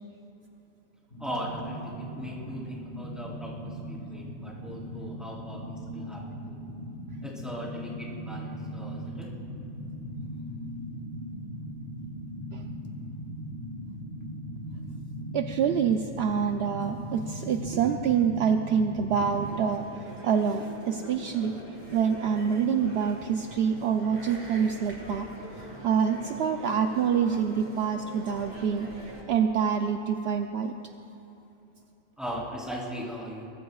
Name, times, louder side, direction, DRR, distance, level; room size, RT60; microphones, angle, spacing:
sound 1, 1.1-19.5, equal, 70° left, 3.9 m, -39 dB
voice 1, 1.2-6.5 7.2-9.3 32.2-33.5, equal, ahead, -6 dB, 3.4 m, -39 dB
voice 2, 15.3-21.6 21.9-28.9 29.3-30.7, right 7 dB, 70° right, 5 dB, 0.8 m, -26 dB
sound 2, 19.1-29.2, right 1 dB, 40° right, 2.7 m, -45 dB
23.0 x 20.0 x 2.4 m, 2.8 s
omnidirectional pair, 1.2 m